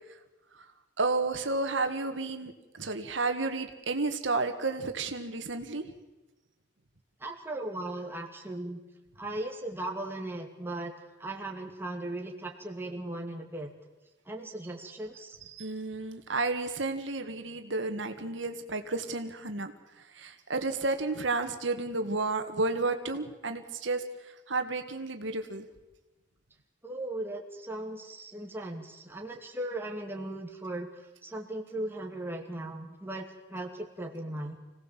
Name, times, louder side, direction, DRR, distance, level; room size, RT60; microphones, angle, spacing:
voice 1, 1.0-2.5 2.8-5.9 15.5-19.7 20.1-24.0 24.5-25.7, right 3 dB, 85° right, 7 dB, 1.8 m, -31 dB
voice 2, 7.2-8.8 9.2-10.9 11.2-13.7 14.3-15.4 26.8-30.9 31.2-34.6, right 1 dB, 10° right, 0 dB, 2.5 m, -37 dB
26.0 x 17.5 x 7.5 m, 1.1 s
head